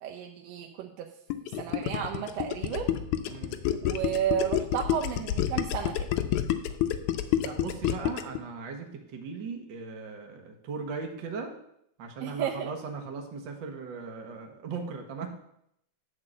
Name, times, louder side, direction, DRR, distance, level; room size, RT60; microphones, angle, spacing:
voice 1, 0.0-1.1 1.6-2.9 3.8-6.1 12.2-12.7, right 9 dB, 75° right, 1 dB, 1.6 m, -32 dB
Gurgling, 1.3-8.4, left 12 dB, 80° left, 2.0 m, -28 dB
voice 2, 3.3-3.7 7.4-11.6 12.0-15.3, right 4 dB, 55° right, 3 dB, 1.4 m, -38 dB
11.0 x 4.6 x 7.4 m, 0.74 s
omnidirectional pair, 3.7 m